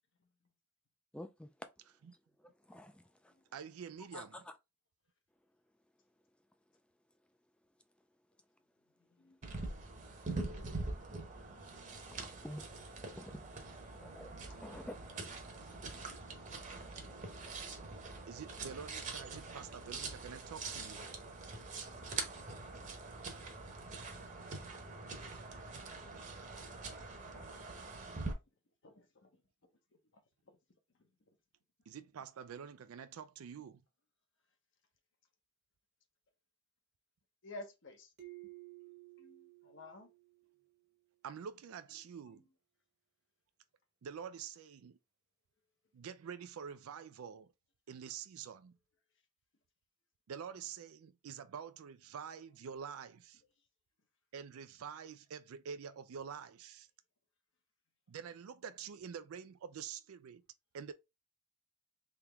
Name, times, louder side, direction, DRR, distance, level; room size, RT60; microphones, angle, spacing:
voice 1, 1.1-1.5 2.7-2.9 4.1-4.2 10.9-11.0 12.1-12.6 13.2-15.1, left 1 dB, 5° left, 0.4 m, -49 dB
voice 2, 3.5-4.4 13.3-13.4 18.3-21.1 31.9-33.8 41.2-42.4 44.0-45.0 45.9-47.5 47.9-48.7 50.3-53.4 54.3-56.9 58.1-60.4 60.7-60.9, right 7 dB, 85° right, 0.4 m, -47 dB
sound 1, 9.4-28.3, right 3 dB, 35° right, 0.9 m, -44 dB
voice 3, 28.8-29.3 30.5-30.6 37.4-38.1 39.2-40.1 42.3-42.4, left 2 dB, 60° left, 0.9 m, -52 dB
sound 2, 38.2-40.7, right 20 dB, 55° right, 1.1 m, -54 dB
3.5 x 3.0 x 3.4 m
head